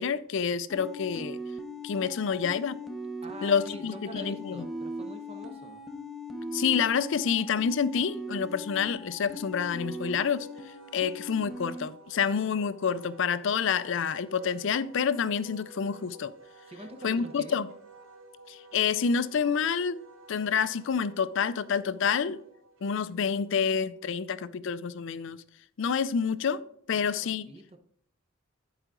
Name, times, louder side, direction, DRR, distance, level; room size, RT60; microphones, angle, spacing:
voice 1, 0.0-1.4 1.8-2.8 3.4-4.6 6.5-10.5 10.9-16.3 17.0-17.7 18.5-20.0 20.3-22.4 22.8-25.4 25.8-27.5, left 6 dB, 60° left, 0.4 m, -28 dB
menu music, 0.7-11.9, left 1 dB, ahead, 0.7 m, -40 dB
voice 2, 3.2-5.8 16.7-17.6 26.9-27.8, right 1 dB, 30° right, 0.9 m, -45 dB
Wind instrument woodwind instrument, 9.6-24.3, right 2 dB, 70° right, 1.0 m, -53 dB
11.0 x 5.0 x 3.7 m
head